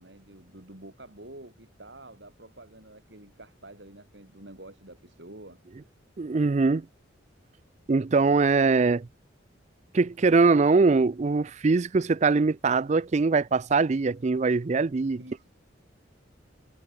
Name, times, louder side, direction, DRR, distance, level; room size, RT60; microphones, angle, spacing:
voice 1, 0.0-5.6 15.2-15.5, right 1 dB, 60° right, 4.2 m, -48 dB
voice 2, 6.2-6.9 7.9-9.1 9.9-15.2, right 4 dB, 35° right, 0.4 m, -22 dB
head